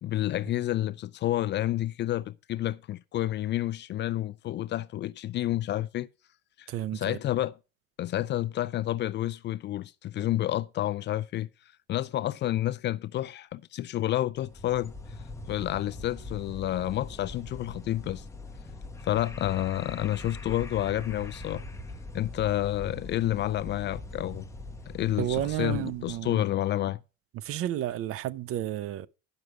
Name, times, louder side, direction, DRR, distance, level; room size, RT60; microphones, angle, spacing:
voice 1, 0.0-6.1 6.6-7.6 8.0-11.5 11.9-14.9 15.5-18.2 19.0-21.7 22.1-24.5 24.9-27.0, left 13 dB, 35° left, 0.4 m, -29 dB
voice 2, 6.7-7.2 25.2-26.4 27.3-29.1, right 12 dB, 45° right, 0.7 m, -31 dB
sound 1, 14.4-26.3, left 2 dB, 10° left, 1.0 m, -42 dB
11.0 x 6.4 x 4.8 m
cardioid pair, 125°, 31 cm